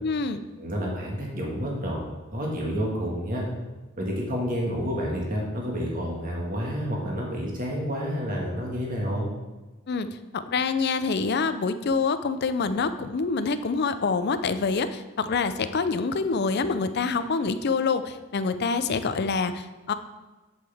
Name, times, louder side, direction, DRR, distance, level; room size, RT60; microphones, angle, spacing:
voice 1, 0.0-0.4 9.9-19.9, left 4 dB, 50° left, 11 dB, 0.5 m, -26 dB
voice 2, 0.6-2.0 2.3-3.5 4.0-9.3, equal, 40° right, -2 dB, 1.7 m, -29 dB
8.1 x 7.6 x 3.5 m, 1.2 s
head